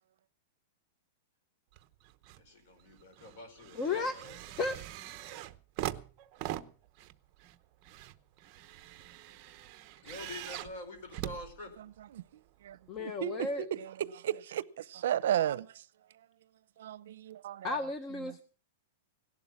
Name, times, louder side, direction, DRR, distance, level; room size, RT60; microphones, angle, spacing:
sound 1, 1.7-2.5 2.8-12.2 13.0-13.1, right 14 dB, 30° right, 0.8 m, -43 dB
voice 1, 2.4-4.4 10.0-11.8, left 2 dB, 50° left, 5.0 m, -46 dB
voice 2, 3.7-4.1 4.6-4.8 12.9-13.7 17.6-18.4, left 3 dB, 20° left, 0.8 m, -33 dB
voice 3, 12.6-15.8 16.8-17.8, right 11 dB, 65° right, 0.6 m, -34 dB
17.5 x 11.5 x 5.9 m
supercardioid pair, 170°, 0 cm